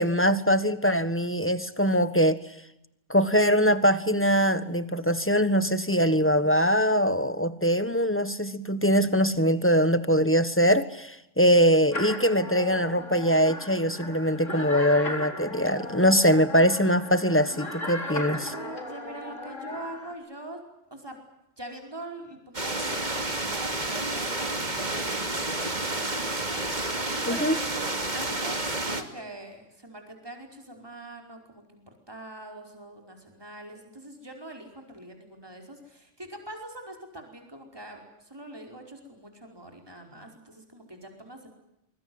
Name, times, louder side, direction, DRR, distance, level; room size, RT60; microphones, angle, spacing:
voice 1, 0.0-2.4 3.1-18.4 27.3-27.6, equal, 10° left, 12 dB, 1.4 m, -22 dB
sound 1, 11.9-20.1, left 1 dB, 90° left, 4.5 m, -36 dB
voice 2, 18.3-20.6 20.9-21.2 21.6-41.5, right 1 dB, 20° right, 3 dB, 5.0 m, -43 dB
sound 2, 22.5-29.0, right 2 dB, 35° right, 2.7 m, -30 dB
25.0 x 24.0 x 7.9 m, 0.82 s
omnidirectional pair, 1.3 m